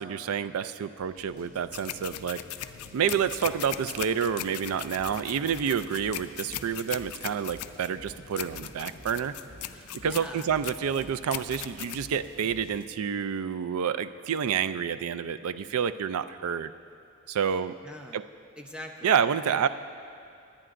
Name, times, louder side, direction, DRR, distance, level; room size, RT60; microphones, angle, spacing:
voice 1, 0.0-2.4 2.9-9.3 10.0-16.7 17.3-17.7 18.1-18.2 19.0-19.7, right 7 dB, 70° right, 13 dB, 0.4 m, -28 dB
sound 1, 1.0-13.2, equal, 90° right, 2.3 m, -53 dB
sound 2, 1.7-12.8, left 12 dB, 70° left, 0.4 m, -39 dB
sound 3, 4.9-5.1 5.4-5.6 5.9-6.1 6.4-6.6 6.9-7.1 7.4-7.6 7.9-8.1 8.4-8.6 8.9-9.1 9.4-9.6 9.9-10.1 10.4-10.6 10.9-11.1 11.4-11.6 11.9-12.1 12.4-12.6, left 2 dB, 30° right, 1.7 m, -49 dB
voice 2, 9.7-10.5 17.4-18.2 18.6-19.7, equal, 5° right, 2 dB, 0.6 m, -44 dB
22.0 x 8.8 x 2.5 m, 2.5 s
head